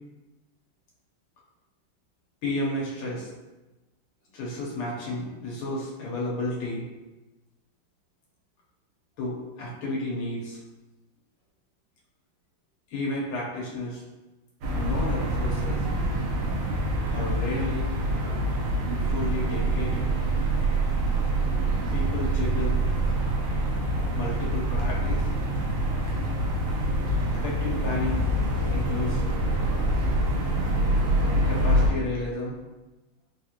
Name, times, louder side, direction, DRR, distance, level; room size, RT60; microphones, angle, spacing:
voice 1, 2.4-3.3 4.3-6.8 9.2-10.6 12.9-14.0 14.7-15.8 17.1-17.9 19.0-20.1 21.9-22.8 24.1-25.3 27.2-28.3 28.7-29.2 31.5-32.6, left 2 dB, 85° left, -5 dB, 1.9 m, -32 dB
sound 1, 14.6-31.9, right 1 dB, 70° right, 1.4 m, -25 dB
4.3 x 2.4 x 2.9 m, 1.1 s
omnidirectional pair, 2.3 m